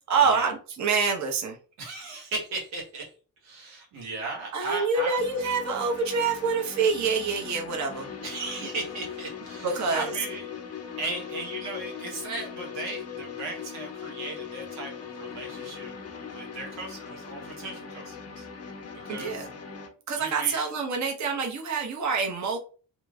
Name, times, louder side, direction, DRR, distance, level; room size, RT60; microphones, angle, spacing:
voice 1, 0.1-1.6 4.5-8.1 9.6-10.1 19.1-19.5 20.1-22.6, right 5 dB, 35° right, 2 dB, 0.8 m, -26 dB
voice 2, 1.8-3.1 3.4-5.2 8.2-10.5 11.0-16.0 16.2-18.5 18.9-19.5 20.1-20.6, right 2 dB, 75° right, -1 dB, 1.2 m, -36 dB
sound 1, 5.2-19.9, left 6 dB, 30° left, 0.6 m, -40 dB
3.0 x 2.6 x 2.3 m, 0.38 s
hypercardioid pair, 45°, 50 cm